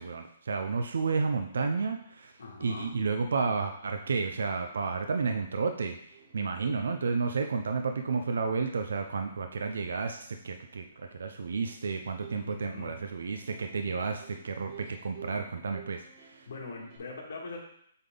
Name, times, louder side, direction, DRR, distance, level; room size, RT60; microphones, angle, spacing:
voice 1, 0.0-16.5, right 4 dB, 85° right, 5 dB, 0.6 m, -32 dB
voice 2, 2.4-2.9 12.3-13.0 16.5-17.6, left 4 dB, 70° left, -2 dB, 2.1 m, -42 dB
Plucked string instrument, 5.0-17.0, right 6 dB, 35° right, 1.3 m, -55 dB
8.0 x 3.7 x 3.9 m, 0.68 s
hypercardioid pair, 170°, 0 cm